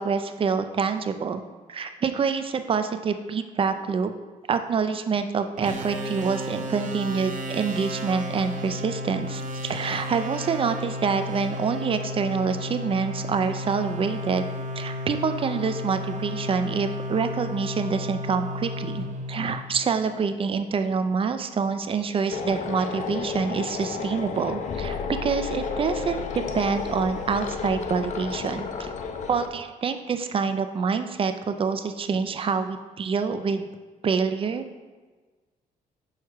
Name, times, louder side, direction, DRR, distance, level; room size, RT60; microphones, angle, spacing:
voice 1, 0.0-1.4 1.7-4.1 4.5-14.5 14.8-28.9 29.3-33.7 34.0-34.7, right 5 dB, 35° right, 9 dB, 0.4 m, -26 dB
sound 1, 5.6-20.1, left 1 dB, 55° right, 0.9 m, -33 dB
sound 2, 22.3-29.5, left 5 dB, 50° left, 0.6 m, -32 dB
6.4 x 4.7 x 4.6 m, 1.4 s
cardioid pair, 130°, 16 cm